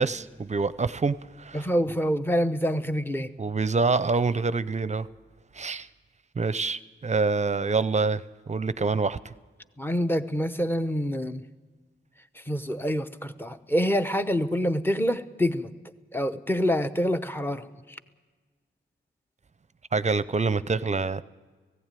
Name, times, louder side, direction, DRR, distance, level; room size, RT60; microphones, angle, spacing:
voice 1, 0.0-1.7 3.4-5.1 5.6-5.9 6.4-9.2 19.9-21.2, right 4 dB, 35° right, 16 dB, 0.6 m, -26 dB
voice 2, 1.5-3.3 9.8-11.4 12.5-15.7 16.1-17.7, equal, 10° left, 9 dB, 0.9 m, -26 dB
17.5 x 16.0 x 9.1 m, 1.4 s
wide cardioid pair, 110°, 20 cm